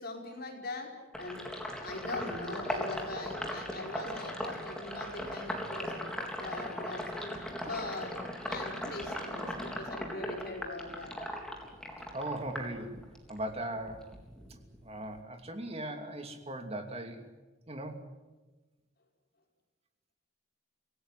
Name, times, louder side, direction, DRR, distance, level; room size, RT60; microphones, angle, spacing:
voice 1, 0.0-1.4 1.8-8.1 8.5-11.2, left 2 dB, 50° left, 1 dB, 5.1 m, -41 dB
Sink (filling or washing), 1.1-13.4 13.8-15.2, left 1 dB, 5° left, 3.8 m, -38 dB
voice 2, 12.1-12.9 13.3-14.1 14.8-17.2 17.7-18.0, right 1 dB, 30° right, 6 dB, 2.8 m, -38 dB
26.0 x 18.0 x 10.0 m, 1.2 s
head